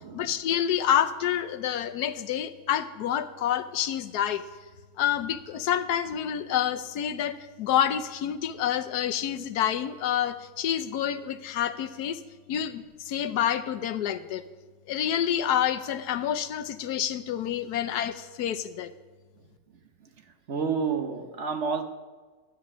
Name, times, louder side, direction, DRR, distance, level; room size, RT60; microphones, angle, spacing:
voice 1, 0.1-4.4 5.0-12.2 12.5-14.4 14.9-18.9, left 10 dB, 90° left, 12 dB, 1.3 m, -28 dB
voice 2, 20.5-21.8, right 5 dB, 50° right, 6 dB, 1.2 m, -29 dB
12.5 x 9.6 x 6.1 m, 1.3 s
omnidirectional pair, 1.6 m